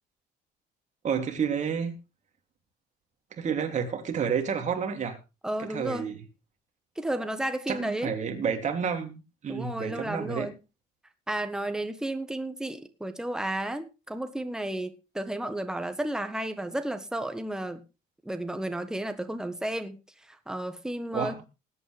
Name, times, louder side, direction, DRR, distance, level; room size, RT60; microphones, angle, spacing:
voice 1, 1.0-1.9 3.3-5.2 5.7-6.2 7.7-10.5 21.1-21.4, right 7 dB, 45° right, 3.1 m, -30 dB
voice 2, 5.4-6.1 7.0-8.1 9.5-10.5 11.3-17.8 18.2-20.0 20.3-21.4, right 1 dB, 5° right, 1.5 m, -32 dB
20.5 x 8.8 x 3.5 m
cardioid pair, 110°, 17 cm